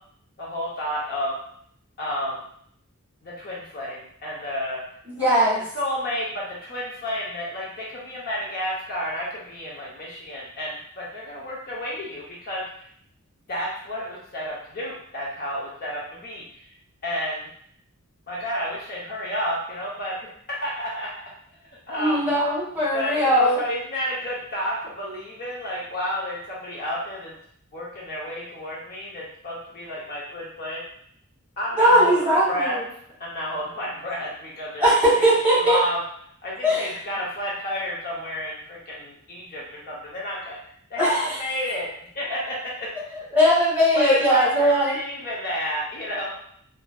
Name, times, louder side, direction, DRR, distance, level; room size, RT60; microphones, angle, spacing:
voice 1, 0.4-1.3 2.0-2.4 3.2-4.8 5.7-12.6 13.5-16.4 17.0-17.5 18.3-20.1 20.5-21.1 21.9-22.3 22.9-27.3 27.7-30.8 31.6-32.8 33.2-34.8 35.1-35.2 35.5-36.0 36.4-40.6 40.9-41.9 42.1-42.9 43.4-43.5 43.9-46.4, equal, 45° left, -5 dB, 0.7 m, -30 dB
voice 2, 5.1-5.6 22.0-23.6 31.8-32.8 34.8-35.8 36.6-36.8 41.0-41.2 43.3-45.0, equal, 10° right, -7 dB, 1.3 m, -19 dB
3.0 x 2.5 x 2.2 m, 0.64 s
head